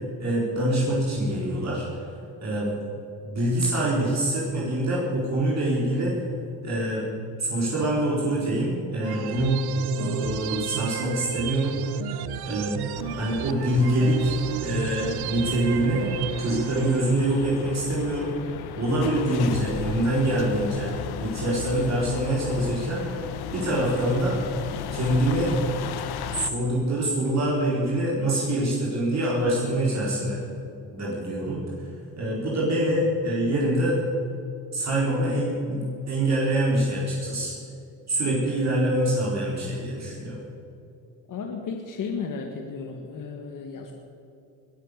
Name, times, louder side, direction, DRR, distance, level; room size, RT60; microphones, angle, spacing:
voice 1, 0.2-2.0 2.4-2.8 3.2-6.1 6.6-7.0 7.4-9.6 9.9-11.9 12.4-12.8 13.1-14.3 14.6-16.0 16.4-18.4 18.8-23.1 23.5-24.4 24.9-25.8 26.3-30.4 30.9-31.9 32.2-34.0 34.7-37.5 38.1-40.4, right 1 dB, 45° right, -5 dB, 4.3 m, -25 dB
sound 1, 9.0-17.0, right 12 dB, 80° right, 0.8 m, -33 dB
sound 2, 13.0-26.5, left 9 dB, 85° left, 1.1 m, -36 dB
voice 2, 41.3-43.9, left 5 dB, 55° left, 2 dB, 1.8 m, -34 dB
21.0 x 9.1 x 6.7 m, 2.8 s
cardioid pair, 105°, 37 cm